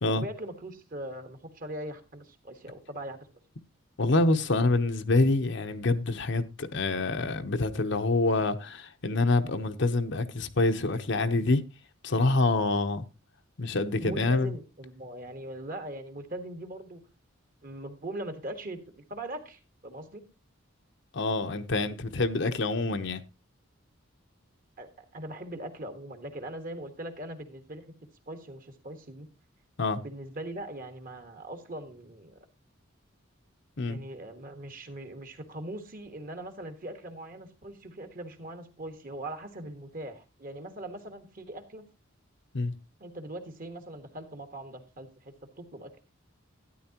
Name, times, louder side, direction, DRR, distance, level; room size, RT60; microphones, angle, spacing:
voice 1, 0.2-3.2 14.0-17.0 17.6-20.2 24.8-27.8 28.3-29.3 30.0-32.4 33.9-41.8 43.0-45.9, right 1 dB, 40° right, 1.5 m, -41 dB
voice 2, 4.0-11.6 12.0-13.0 13.6-14.5 21.1-23.2 29.8-30.0 33.8-34.0 42.5-42.7, left 2 dB, 60° left, 0.8 m, -26 dB
12.5 x 10.0 x 2.9 m
head